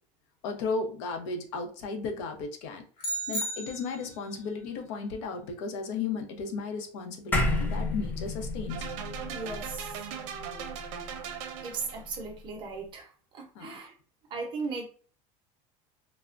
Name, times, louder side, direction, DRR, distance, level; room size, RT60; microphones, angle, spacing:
voice 1, 0.4-2.8 3.3-8.8 13.5-13.8, left 4 dB, 75° left, 4 dB, 0.8 m, -35 dB
sound 1, 3.0-4.3, right 1 dB, 35° left, 1.1 m, -34 dB
sound 2, 7.3-11.9, left 2 dB, 10° left, 0.5 m, -32 dB
sound 3, 8.7-12.2, right 8 dB, 85° right, 0.6 m, -39 dB
voice 2, 9.3-9.9 11.6-13.9 14.3-14.9, right 4 dB, 30° right, 3 dB, 0.7 m, -37 dB
3.3 x 2.1 x 2.5 m, 0.41 s
cardioid pair, 165°, 16 cm